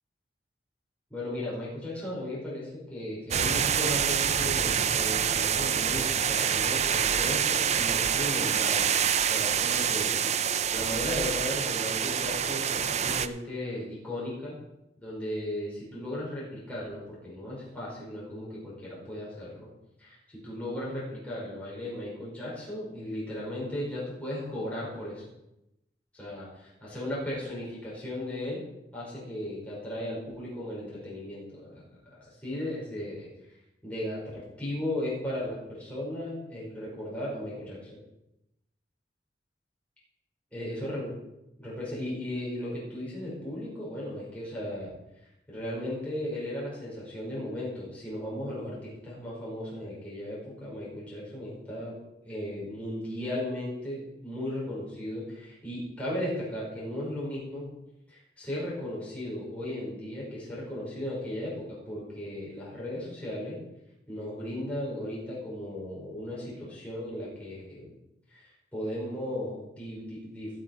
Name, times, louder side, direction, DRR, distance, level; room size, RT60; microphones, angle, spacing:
voice 1, 1.1-14.6 15.0-19.7 20.0-25.2 26.1-28.6 28.9-33.3 33.8-38.0 40.5-41.1 41.6-44.9 45.5-51.9 52.2-57.7 58.1-63.6 64.1-67.9 68.3-70.5, left 1 dB, 10° left, -7 dB, 5.3 m, -36 dB
sound 1, 3.3-13.3, right 8 dB, 40° right, 0.5 m, -26 dB
16.5 x 7.7 x 4.7 m, 0.89 s
head